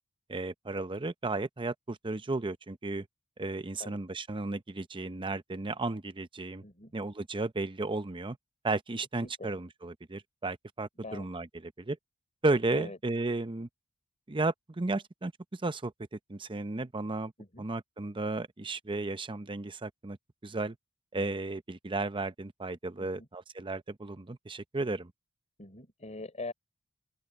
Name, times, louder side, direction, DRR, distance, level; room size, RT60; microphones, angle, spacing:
voice 1, 0.3-3.1 3.4-6.6 6.9-8.4 8.6-12.0 12.4-13.7 14.3-15.9 16.3-17.3 17.6-20.2 20.4-20.8 21.1-25.1, right 2 dB, 25° right, 0.7 m, -34 dB
voice 2, 6.6-6.9 9.2-9.5 11.0-11.3 12.7-13.0 17.4-17.7 23.0-23.3 25.6-26.5, left 2 dB, 35° left, 5.2 m, -43 dB
open air
head